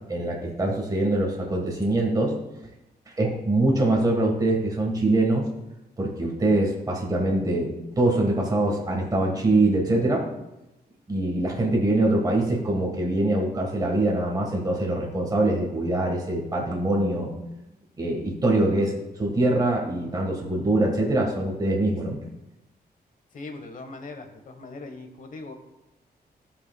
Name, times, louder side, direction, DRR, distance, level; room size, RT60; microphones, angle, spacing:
voice 1, 0.1-2.3 3.2-5.5 6.0-7.7 8.0-10.2 11.1-17.3 18.0-22.2, right 2 dB, 25° right, -1 dB, 1.4 m, -23 dB
voice 2, 23.3-25.5, left 3 dB, 55° left, 6 dB, 1.1 m, -40 dB
16.5 x 5.7 x 2.2 m, 0.94 s
wide cardioid pair, 175°, 16 cm